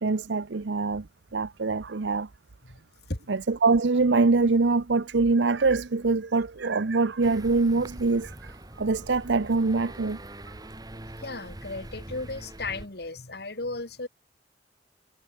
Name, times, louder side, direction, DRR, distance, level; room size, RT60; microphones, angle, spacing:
voice 1, 0.0-1.1 1.3-2.3 3.3-10.2 10.5-10.6, right 3 dB, 90° right, 0.8 m, -24 dB
sound 1, 7.2-12.9, right 1 dB, 20° right, 1.9 m, -43 dB
voice 2, 11.2-14.1, left 3 dB, 65° left, 2.4 m, -35 dB
head